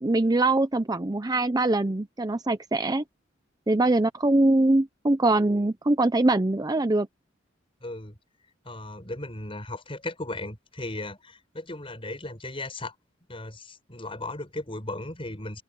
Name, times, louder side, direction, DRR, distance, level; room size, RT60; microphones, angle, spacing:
voice 1, 0.0-3.0 3.7-7.1, right 2 dB, 20° right, 0.6 m, -23 dB
voice 2, 7.8-8.2 8.6-12.9 13.3-15.6, left 2 dB, 30° left, 5.6 m, -36 dB
head